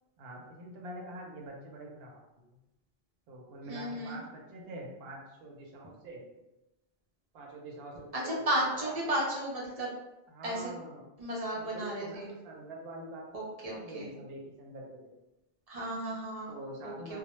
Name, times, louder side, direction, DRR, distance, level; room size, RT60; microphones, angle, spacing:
voice 1, 0.2-2.1 3.3-6.2 7.3-8.9 10.3-11.0 11.5-13.4 13.7-15.0 16.5-17.2, right 1 dB, 75° right, -1 dB, 0.8 m, -45 dB
voice 2, 3.7-4.2 8.1-9.9 10.4-10.7 11.2-12.3 13.3-14.1 15.7-16.5 16.8-17.2, right 1 dB, 50° right, -3 dB, 0.5 m, -34 dB
2.1 x 2.0 x 2.9 m, 0.96 s
omnidirectional pair, 1.0 m